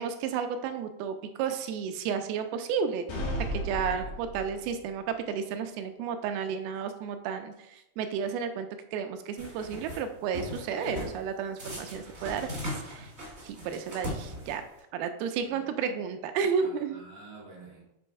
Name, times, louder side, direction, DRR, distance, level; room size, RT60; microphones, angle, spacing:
voice 1, 0.0-3.2 3.5-13.1 13.4-14.6 14.9-17.0, right 6 dB, 85° right, 8 dB, 2.4 m, -32 dB
sound 1, 3.1-4.8, equal, 75° left, 3.0 m, -34 dB
sound 2, 9.4-10.0 10.3-11.2 11.6-14.8, equal, 35° right, 1.0 m, -39 dB
voice 2, 16.5-17.8, right 3 dB, 35° left, -4 dB, 0.5 m, -49 dB
7.8 x 3.0 x 4.6 m, 0.87 s
omnidirectional pair, 4.5 m